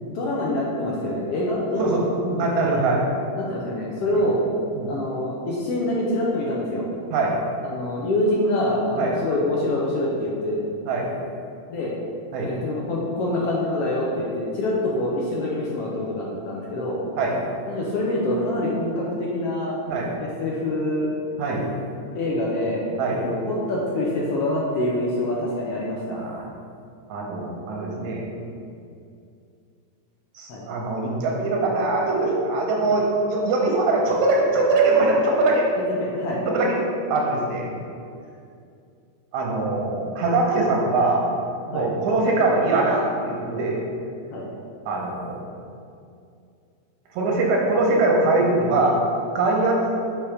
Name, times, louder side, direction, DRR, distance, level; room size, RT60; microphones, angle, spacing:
voice 1, 0.0-2.0 3.4-4.4 4.9-6.9 7.6-10.6 11.7-11.9 12.4-17.0 17.7-19.8 20.2-21.1 22.1-22.9 23.2-26.2 30.5-30.6 32.9-33.0 36.0-36.4 41.7-41.9 44.3-44.5, left 1 dB, 70° left, -4 dB, 1.5 m, -25 dB
voice 2, 1.8-3.1 4.7-4.9 7.1-7.4 9.0-9.2 10.9-11.1 12.3-12.5 17.2-17.4 19.9-20.1 21.4-21.7 23.0-23.2 26.1-26.4 27.1-28.3 30.3-35.7 36.4-36.8 37.1-37.7 39.3-41.2 41.7-43.8 44.9-45.4 47.1-49.0 49.4-50.0, right 2 dB, 85° right, -1 dB, 2.3 m, -22 dB
7.0 x 3.5 x 4.9 m, 2.4 s
omnidirectional pair, 3.3 m